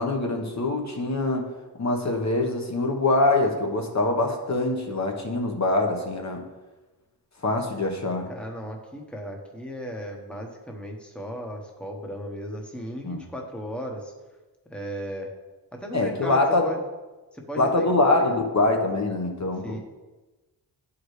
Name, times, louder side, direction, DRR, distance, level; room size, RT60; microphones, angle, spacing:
voice 1, 0.0-1.5 1.8-6.4 7.4-8.3 13.0-13.2 15.9-16.6 17.6-19.8, left 2 dB, 40° left, 2 dB, 1.2 m, -24 dB
voice 2, 8.3-14.1 14.7-15.3 15.7-16.8 17.3-18.4 19.5-19.8, equal, 5° left, 1 dB, 1.2 m, -36 dB
10.5 x 4.9 x 3.2 m, 1.2 s
cardioid pair, 75°, 42 cm